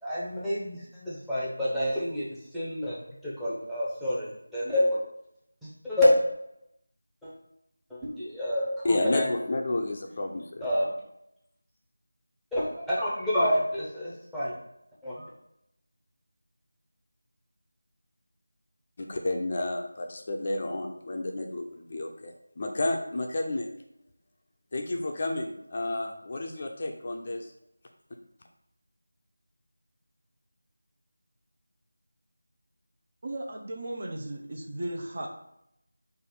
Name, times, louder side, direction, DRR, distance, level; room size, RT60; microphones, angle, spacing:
voice 1, 0.0-2.3 2.5-3.0 3.2-4.9 5.8-6.1 7.2-7.3 7.9-9.3 10.6-10.9 12.5-14.5 15.0-15.2, left 1 dB, ahead, -10 dB, 0.7 m, -28 dB
voice 2, 8.8-10.7 19.0-23.7 24.7-27.5, left 2 dB, 35° left, 2 dB, 0.4 m, -31 dB
voice 3, 33.2-35.3, right 1 dB, 45° right, 1 dB, 0.7 m, -36 dB
4.6 x 2.5 x 4.3 m, 0.78 s
figure-of-eight pair, 170°, 0 cm